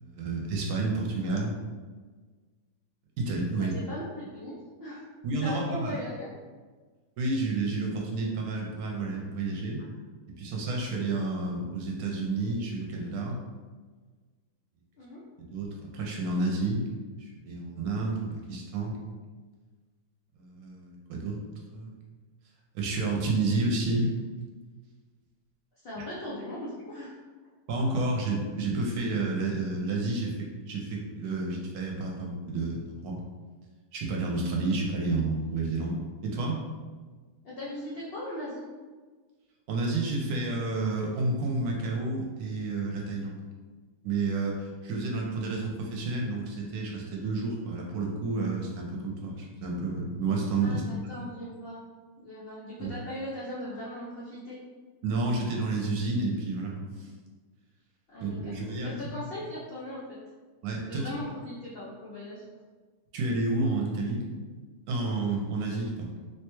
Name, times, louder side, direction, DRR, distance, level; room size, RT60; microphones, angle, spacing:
voice 1, 0.0-1.5 3.2-3.7 5.2-6.0 7.2-9.8 10.4-13.4 15.5-16.8 17.2-19.0 20.3-21.4 21.7-22.0 22.7-24.1 27.7-33.2 33.9-36.6 39.7-43.4 44.0-50.8 51.2-51.3 52.8-52.9 55.0-57.1 58.2-59.2 60.6-61.2 63.1-64.2 64.9-66.2, right 3 dB, 75° right, -1 dB, 1.0 m, -30 dB
voice 2, 3.6-5.1 5.4-6.3 15.0-15.2 25.8-27.2 37.4-38.6 50.6-51.8 52.2-54.6 58.1-58.5 58.8-60.2 60.8-62.4, left 1 dB, 75° left, -7 dB, 0.5 m, -39 dB
3.1 x 2.2 x 2.9 m, 1.4 s
omnidirectional pair, 1.7 m